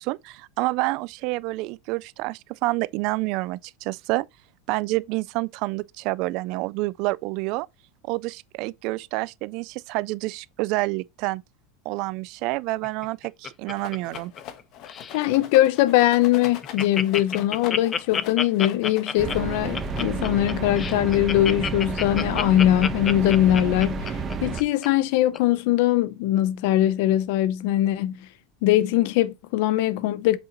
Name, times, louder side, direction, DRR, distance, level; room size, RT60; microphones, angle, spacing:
voice 1, 0.0-4.3 4.7-7.7 8.0-11.4 11.9-14.3, right 21 dB, 50° right, 0.3 m, -28 dB
Laughter, 12.8-14.6 14.9-15.2 15.7-15.8 16.1-16.2 16.4-24.9 25.3-25.4, left 6 dB, 20° left, 0.5 m, -29 dB
Rattle, 13.7-20.4, left 10 dB, 45° left, 1.2 m, -42 dB
voice 2, 15.1-24.1 24.4-28.3 28.6-30.4, left 14 dB, 60° left, 0.7 m, -21 dB
sound 1, 19.2-24.6, right 5 dB, 20° right, 1.0 m, -30 dB
7.7 x 6.1 x 3.0 m
supercardioid pair, 160°, 0 cm